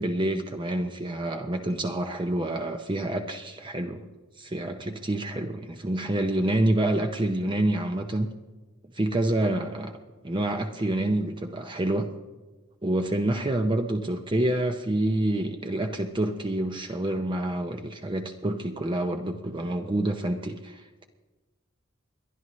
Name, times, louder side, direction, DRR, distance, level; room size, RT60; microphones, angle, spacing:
voice 1, 0.0-4.0 4.4-8.3 8.9-9.9 10.2-12.1 12.8-21.0, right 1 dB, 25° right, 5 dB, 0.7 m, -27 dB
29.5 x 11.0 x 3.1 m, 1.3 s
head